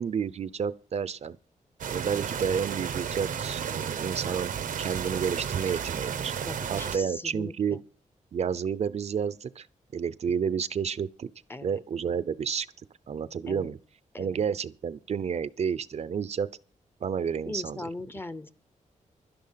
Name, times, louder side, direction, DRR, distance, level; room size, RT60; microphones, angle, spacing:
voice 1, 0.0-1.4 1.9-6.3 6.7-7.8 8.3-9.7 9.9-11.3 11.6-12.7 13.1-13.8 14.2-16.5 17.0-17.9, right 7 dB, 55° right, 0.6 m, -30 dB
sound 1, 1.8-7.0, right 7 dB, 90° right, 0.9 m, -33 dB
voice 2, 6.4-7.8 11.5-11.8 13.5-13.7 14.1-14.4 17.5-18.5, left 2 dB, 15° left, 0.7 m, -39 dB
12.0 x 10.5 x 5.7 m
wide cardioid pair, 170°, 13 cm